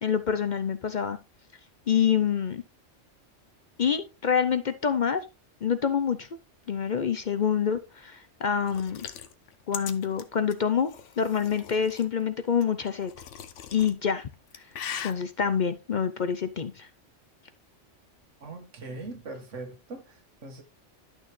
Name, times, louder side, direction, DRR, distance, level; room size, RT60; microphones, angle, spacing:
voice 1, 0.0-1.2 1.9-2.6 3.8-5.2 5.6-6.3 6.7-9.1 9.7-13.1 13.7-14.3 15.0-16.9, left 7 dB, 50° left, 0.6 m, -26 dB
sound 1, 8.6-12.1 12.6-13.9 14.3-15.1, left 9 dB, 80° left, 1.1 m, -40 dB
voice 2, 18.4-20.6, right 2 dB, 85° right, 1.8 m, -41 dB
11.5 x 6.3 x 3.1 m
omnidirectional pair, 1.2 m